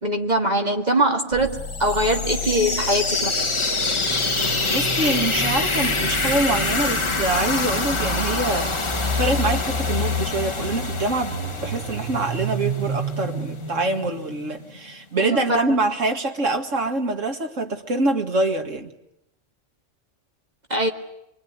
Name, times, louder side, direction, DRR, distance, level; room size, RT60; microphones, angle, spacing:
voice 1, 0.0-3.5 15.2-15.6 20.7-20.9, right 1 dB, 35° right, 3 dB, 2.0 m, -22 dB
sound 1, 1.3-15.1, equal, 55° right, 5.2 m, -31 dB
sound 2, 1.5-13.2, left 3 dB, 25° left, 1.2 m, -26 dB
voice 2, 4.7-18.9, right 2 dB, 85° right, 5 dB, 2.3 m, -25 dB
25.0 x 24.0 x 9.5 m, 0.83 s
omnidirectional pair, 1.3 m